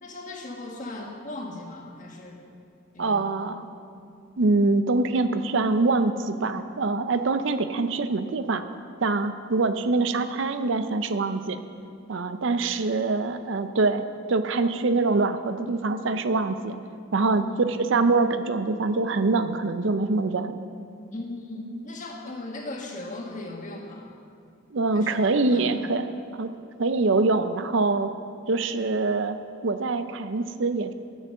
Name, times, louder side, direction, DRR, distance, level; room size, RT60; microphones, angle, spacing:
voice 1, 0.0-2.4 2.9-3.5 17.3-17.6 21.1-24.1 24.9-25.7 28.0-28.1, left 2 dB, 40° left, 0 dB, 1.5 m, -38 dB
voice 2, 3.0-3.7 4.4-8.6 9.0-11.6 12.1-16.8 17.1-17.4 17.8-20.5 24.7-26.1 26.3-26.5 26.8-28.1 28.5-29.4 29.6-30.9, right 3 dB, 60° right, 10 dB, 0.6 m, -24 dB
9.7 x 9.1 x 6.8 m, 2.4 s
head